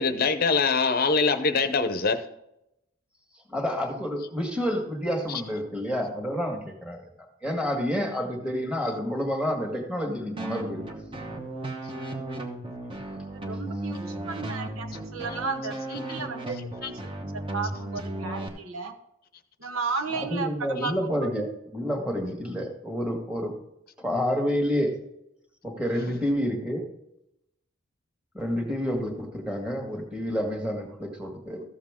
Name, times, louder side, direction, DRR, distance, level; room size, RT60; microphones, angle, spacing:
voice 1, 0.0-2.2 16.8-16.9, left 4 dB, 45° left, 0.7 m, -23 dB
voice 2, 3.5-7.0 7.4-10.9 12.3-12.4 20.1-21.5 21.7-23.6 24.0-25.0 25.6-26.9 28.3-31.6, equal, 5° right, 1.8 m, -29 dB
sound 1, 10.4-18.5, right 1 dB, 25° right, 1.1 m, -35 dB
voice 3, 13.3-17.0 17.3-18.9 19.6-20.9 21.2-21.6, right 4 dB, 85° right, 1.2 m, -34 dB
14.0 x 7.3 x 3.6 m
head